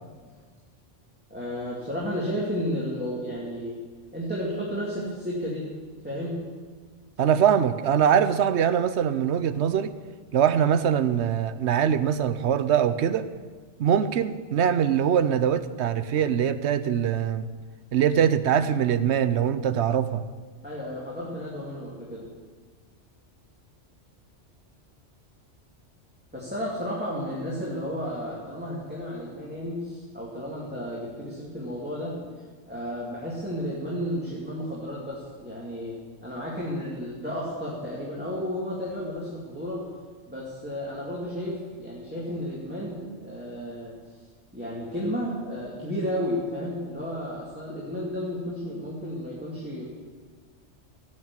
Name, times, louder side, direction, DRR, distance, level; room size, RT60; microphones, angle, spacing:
voice 1, 1.3-3.8 4.1-5.7 6.0-6.5 20.6-22.3 26.3-32.3 32.7-39.9 40.3-44.0 44.5-49.8, equal, 10° right, -7 dB, 2.6 m, -32 dB
voice 2, 7.2-9.9 10.3-13.3 13.8-17.5 17.9-20.3, right 8 dB, 70° right, 13 dB, 0.9 m, -23 dB
16.5 x 6.6 x 8.6 m, 1.5 s
omnidirectional pair, 1.2 m